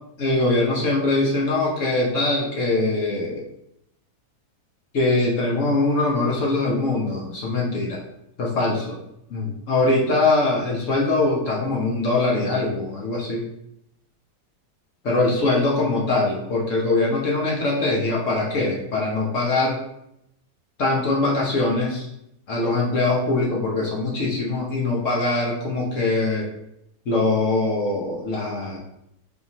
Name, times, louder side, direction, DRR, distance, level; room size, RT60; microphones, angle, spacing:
voice 1, 0.2-3.4 4.9-8.0 8.4-9.0 9.3-13.4 15.0-19.8 20.8-22.1 22.5-26.5 27.1-28.8, left 2 dB, 55° left, -2 dB, 1.1 m, -22 dB
4.0 x 3.7 x 3.0 m, 0.82 s
omnidirectional pair, 1.7 m